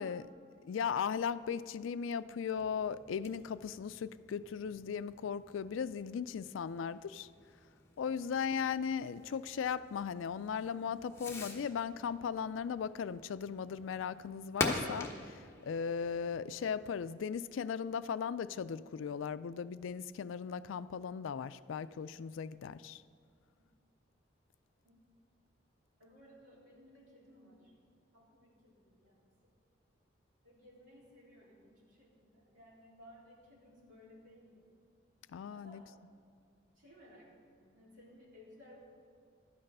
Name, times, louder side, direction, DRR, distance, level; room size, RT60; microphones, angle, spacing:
voice 1, 0.6-7.3 8.0-23.0 35.3-35.8, left 7 dB, 85° left, 15 dB, 0.3 m, -37 dB
Fireworks, 2.5-17.1, left 2 dB, 15° left, 1.0 m, -45 dB
voice 2, 26.0-27.8 28.1-29.5 30.4-34.6 35.5-35.8 36.8-38.8, left 1 dB, 75° right, -6 dB, 3.7 m, -59 dB
12.5 x 8.9 x 5.4 m, 2.3 s
head